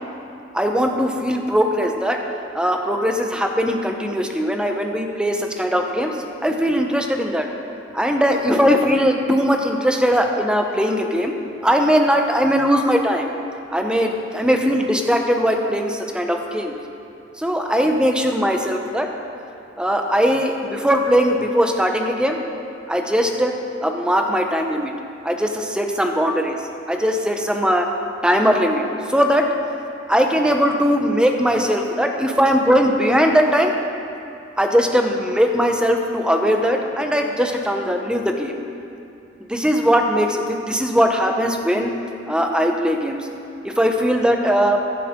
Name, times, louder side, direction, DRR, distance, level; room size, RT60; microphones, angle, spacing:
voice 1, 0.5-2.2 2.5-7.5 7.9-11.3 11.6-13.2 13.7-16.7 17.4-19.1 19.8-22.4 22.9-24.9 25.2-26.6 26.9-27.9 28.2-29.5 30.1-33.7 34.6-38.6 39.5-41.9 42.3-43.3 43.6-44.8, equal, 5° right, 3 dB, 0.8 m, -20 dB
15.5 x 11.0 x 3.7 m, 2.6 s
head